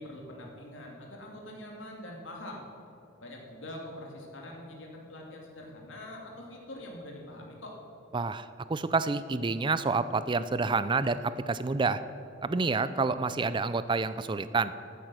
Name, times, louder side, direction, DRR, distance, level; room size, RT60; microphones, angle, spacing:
voice 1, 0.0-2.6 3.2-7.7, left 1 dB, 70° left, 0 dB, 2.5 m, -44 dB
voice 2, 8.1-12.0 12.4-14.7, right 4 dB, 25° right, 14 dB, 0.4 m, -28 dB
14.0 x 9.1 x 6.2 m, 2.8 s
head